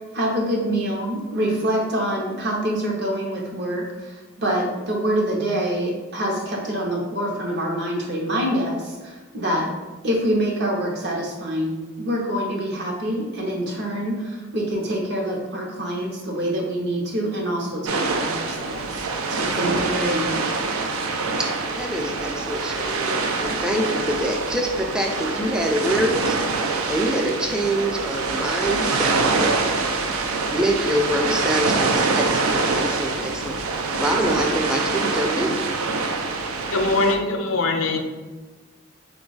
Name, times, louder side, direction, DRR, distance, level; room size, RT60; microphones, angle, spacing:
voice 1, 0.1-9.7 10.0-20.5, right 1 dB, 55° right, 0 dB, 0.8 m, -26 dB
sound 1, 17.9-37.2, right 3 dB, 85° right, 0.4 m, -25 dB
voice 2, 21.7-26.4 26.9-29.4 30.5-35.6, equal, 5° right, 1 dB, 0.3 m, -25 dB
voice 3, 36.7-38.0, left 3 dB, 80° left, 4 dB, 0.5 m, -22 dB
4.0 x 2.3 x 3.8 m, 1.3 s
head